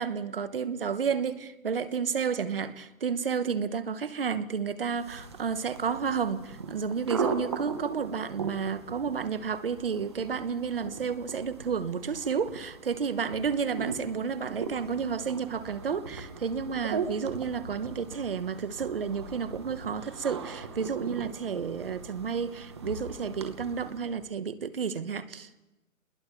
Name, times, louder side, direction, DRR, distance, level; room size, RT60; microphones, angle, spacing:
voice 1, 0.0-25.6, right 6 dB, 45° right, 1.1 m, -31 dB
sound 1, 4.9-24.2, right 5 dB, 20° right, 0.9 m, -39 dB
27.0 x 21.0 x 4.6 m
hypercardioid pair, 175°, 41 cm